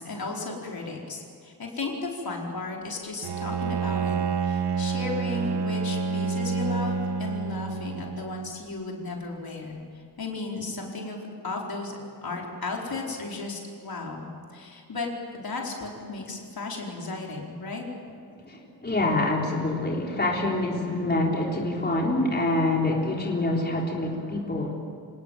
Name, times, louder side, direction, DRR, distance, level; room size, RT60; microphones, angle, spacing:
voice 1, 0.0-4.2 4.4-11.2 11.4-17.8, left 3 dB, 60° left, -1 dB, 4.6 m, -35 dB
Bowed string instrument, 3.2-8.6, right 5 dB, 75° right, 1.3 m, -28 dB
voice 2, 18.4-24.7, left 2 dB, 25° left, -2 dB, 3.7 m, -26 dB
27.5 x 19.0 x 9.2 m, 2.3 s
wide cardioid pair, 105°, 40 cm